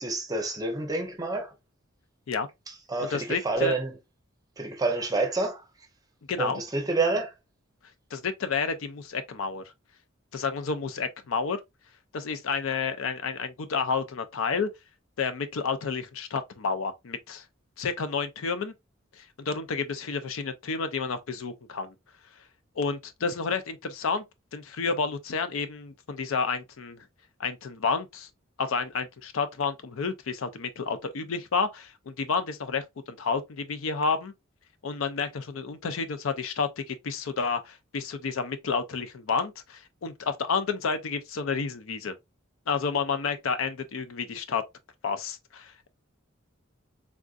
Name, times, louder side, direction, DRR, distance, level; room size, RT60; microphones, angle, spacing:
voice 1, 0.0-1.5 2.7-3.9 4.6-5.6 6.4-7.3, right 3 dB, 20° right, 0.6 m, -28 dB
voice 2, 3.0-3.7 6.3-6.6 8.1-9.6 10.3-11.6 12.1-14.7 15.2-17.4 17.8-18.7 19.2-21.9 22.8-24.2 24.5-27.0 27.4-28.3 28.6-34.3 34.8-42.2 42.7-44.6 45.0-45.9, left 5 dB, 85° left, 0.5 m, -30 dB
3.5 x 2.5 x 2.4 m
head